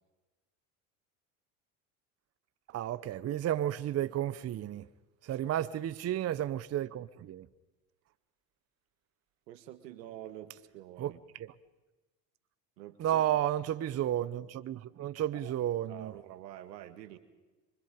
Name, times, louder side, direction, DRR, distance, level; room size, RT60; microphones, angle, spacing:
voice 1, 2.7-4.9 5.2-7.5 11.0-11.1 13.0-16.1, right 11 dB, 30° right, 0.7 m, -32 dB
voice 2, 5.3-5.7 9.5-11.2 12.8-13.4 15.3-15.5 15.9-17.2, right 12 dB, 85° right, 1.9 m, -48 dB
25.0 x 24.0 x 5.1 m
hypercardioid pair, 90°, 48 cm